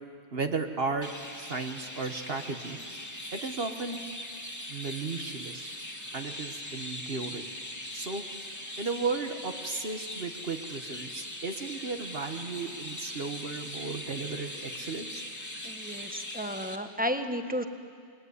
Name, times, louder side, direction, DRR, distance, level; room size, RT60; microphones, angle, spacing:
voice 1, 0.3-1.1 1.4-2.8 3.3-4.0 4.7-5.7 6.1-7.4 7.9-8.2 8.8-15.2, right 4 dB, 60° right, 5 dB, 1.6 m, -34 dB
Chirp tweet, 1.0-16.8, left 1 dB, 15° left, 2.0 m, -41 dB
voice 2, 15.6-17.6, equal, 10° right, 6 dB, 1.4 m, -33 dB
28.5 x 20.5 x 9.6 m, 2.2 s
omnidirectional pair, 1.1 m